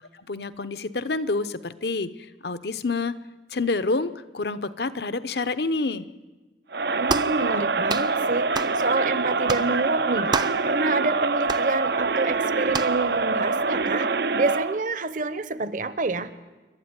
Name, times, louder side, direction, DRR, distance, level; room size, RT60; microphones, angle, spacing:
voice 1, 0.2-3.1 3.5-6.1, left 3 dB, 65° left, 12 dB, 0.9 m, -28 dB
Crowd, 6.7-14.8, right 4 dB, 65° right, 0.7 m, -25 dB
voice 2, 6.9-10.3 10.6-14.1 14.3-16.3, right 3 dB, 50° right, 13 dB, 1.0 m, -27 dB
sound 1, 7.1-7.4 7.9-8.1 8.5-8.8 9.5-9.7 10.3-10.6 11.5-11.7 12.7-13.0, right 4 dB, 25° right, 0.6 m, -28 dB
27.0 x 12.5 x 9.8 m, 1.2 s
head